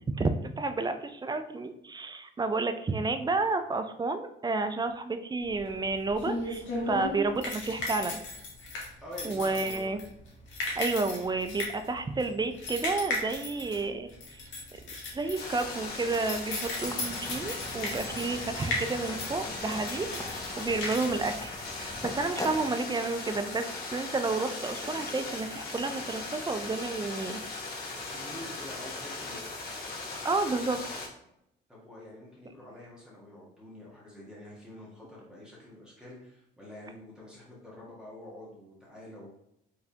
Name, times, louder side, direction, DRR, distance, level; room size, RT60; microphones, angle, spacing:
voice 1, 0.2-8.2 9.2-10.0 10.8-14.4 14.8-27.4 30.2-31.0, right 3 dB, 20° right, 9 dB, 0.4 m, -31 dB
sound 1, 5.5-22.2, left 2 dB, 75° left, 1.4 m, -37 dB
voice 2, 9.0-10.0 28.1-29.4 31.7-39.3, left 1 dB, 5° right, -6 dB, 1.5 m, -46 dB
sound 2, 15.4-31.1, left 3 dB, 50° left, 1.5 m, -38 dB
sound 3, 16.8-22.7, left 1 dB, 15° left, 0.7 m, -42 dB
4.8 x 3.3 x 2.8 m, 0.78 s
cardioid pair, 90°, 20 cm